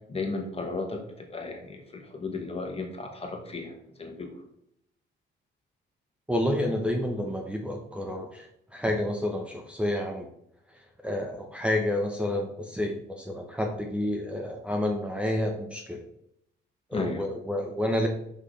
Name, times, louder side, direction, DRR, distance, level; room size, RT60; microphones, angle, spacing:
voice 1, 0.1-4.4 16.9-17.3, left 3 dB, 30° left, 3 dB, 1.6 m, -34 dB
voice 2, 6.3-10.3 10.7-16.0 16.9-18.1, left 1 dB, 5° right, 2 dB, 0.9 m, -29 dB
6.1 x 5.6 x 3.3 m, 0.75 s
cardioid pair, 90°, 20 cm